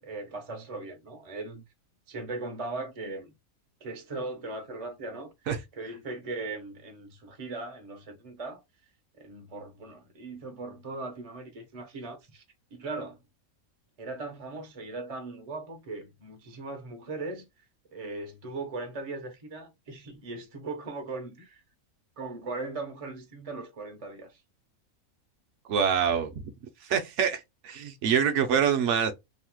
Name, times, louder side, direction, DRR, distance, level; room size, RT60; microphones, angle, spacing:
voice 1, 0.0-1.6 2.1-3.3 3.8-5.3 5.7-8.6 9.2-12.4 12.7-13.2 14.0-17.5 17.9-21.6 22.2-24.4, right 3 dB, 45° right, 0.4 m, -38 dB
voice 2, 25.7-26.3 26.8-29.1, right 7 dB, 65° right, 0.8 m, -25 dB
3.1 x 2.0 x 2.9 m
omnidirectional pair, 1.5 m